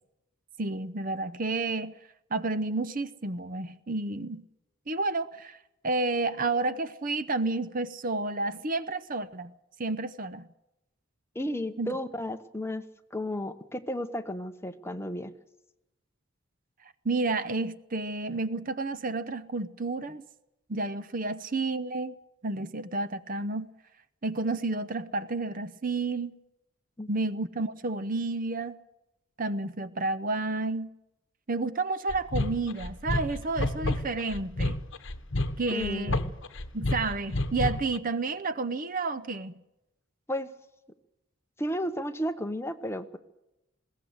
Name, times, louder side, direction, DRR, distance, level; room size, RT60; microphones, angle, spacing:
voice 1, 0.6-1.9 2.3-4.4 4.9-5.6 5.8-9.5 9.8-10.5 11.8-11.9 17.0-20.2 20.7-22.1 22.4-23.7 24.2-26.3 27.1-28.8 29.4-30.9 31.5-34.8 35.6-36.2 36.7-39.5, right 3 dB, 40° right, 0.7 m, -30 dB
voice 2, 11.3-12.8 13.1-15.3 27.0-27.1 35.7-36.3 40.3-40.5 41.6-43.2, equal, 10° left, 1.0 m, -33 dB
sound 1, 32.1-38.0, left 2 dB, 60° left, 1.2 m, -30 dB
21.0 x 17.5 x 8.0 m
head